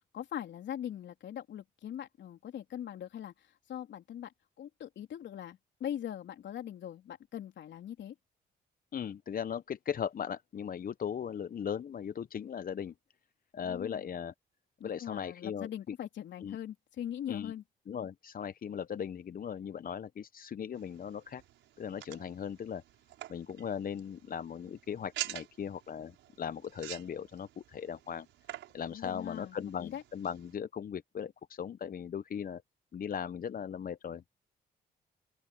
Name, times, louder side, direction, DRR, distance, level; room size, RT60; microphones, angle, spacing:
voice 1, 0.0-3.3 3.7-4.3 4.6-8.1 13.6-14.1 14.8-17.6 28.9-30.0, left 10 dB, 70° left, 3.6 m, -41 dB
voice 2, 8.9-12.9 13.5-14.3 14.8-15.9 16.4-16.6 17.3-17.5 17.9-21.4 21.8-22.8 23.3-28.3 28.7-32.6 32.9-34.3, left 8 dB, 50° left, 0.8 m, -38 dB
sound 1, 20.7-30.5, right 13 dB, 80° right, 5.5 m, -47 dB
open air
supercardioid pair, 55°, 19 cm